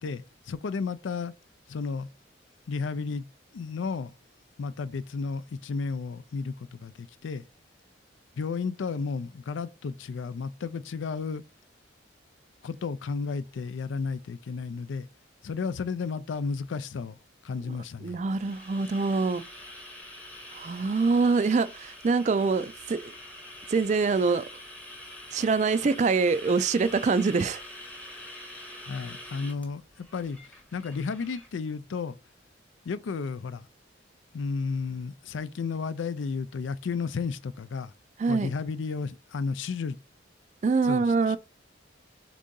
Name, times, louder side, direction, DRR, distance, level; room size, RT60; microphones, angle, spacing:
voice 1, 0.0-1.3 1.7-2.1 2.7-3.3 3.5-4.1 4.6-7.5 8.4-11.4 12.6-15.1 15.4-17.2 17.4-18.2 28.9-30.4 30.7-32.2 32.9-33.6 34.3-37.9 38.3-40.0 40.8-41.4, left 5 dB, 75° left, 0.4 m, -33 dB
voice 2, 18.0-19.4 20.5-23.1 23.7-24.4 25.3-27.6 38.2-38.5 40.6-41.4, right 4 dB, 35° right, 0.3 m, -24 dB
sound 1, 18.1-31.5, left 1 dB, 5° left, 0.8 m, -45 dB
3.9 x 3.6 x 3.7 m
head